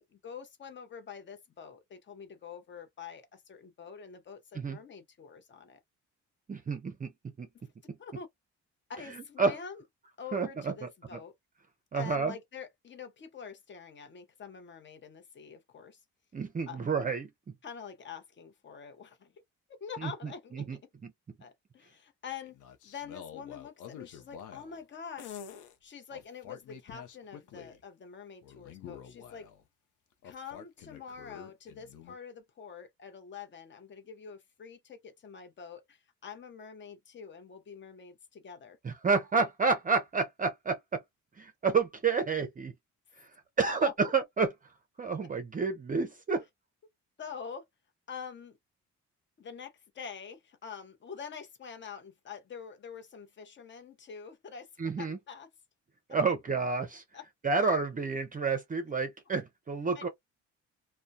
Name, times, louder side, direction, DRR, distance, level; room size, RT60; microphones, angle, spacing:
voice 1, 0.0-5.8 8.0-8.3 8.9-9.8 10.2-11.3 11.9-16.0 16.7-16.8 17.6-19.3 19.8-20.8 21.4-22.6 22.8-25.4 25.8-29.5 30.2-38.8 43.8-44.1 46.4-46.5 47.2-47.7 48.1-48.6 49.4-55.5 57.1-57.2 57.5-57.6 59.9-60.0, left 6 dB, 40° left, 0.7 m, -46 dB
voice 2, 6.5-7.1 7.4-7.5 9.1-9.6 10.3-10.9 11.9-12.3 16.3-17.3 20.5-20.8 38.8-41.0 41.4-42.7 43.2-43.3 43.6-44.5 45.0-46.4 54.8-55.2 56.1-57.0 57.4-60.1, right 4 dB, 30° right, 0.5 m, -29 dB
sound 1, 22.4-24.8 25.2-25.7 26.1-27.8 28.4-29.6 30.2-32.1, left 8 dB, 80° left, 0.6 m, -48 dB
2.2 x 2.1 x 2.6 m
cardioid pair, 90°, 30 cm